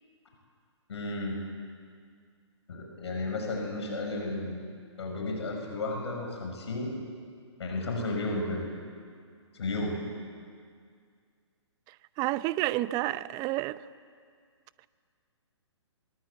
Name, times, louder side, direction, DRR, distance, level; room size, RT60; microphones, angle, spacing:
voice 1, 0.9-1.4 2.7-4.6 5.0-7.0 7.6-8.6 9.5-10.0, left 2 dB, 65° left, 2 dB, 5.9 m, -33 dB
voice 2, 12.2-13.8, right 17 dB, 25° right, 17 dB, 0.7 m, -29 dB
23.5 x 23.5 x 8.2 m, 2.1 s
figure-of-eight pair, 130°, 15 cm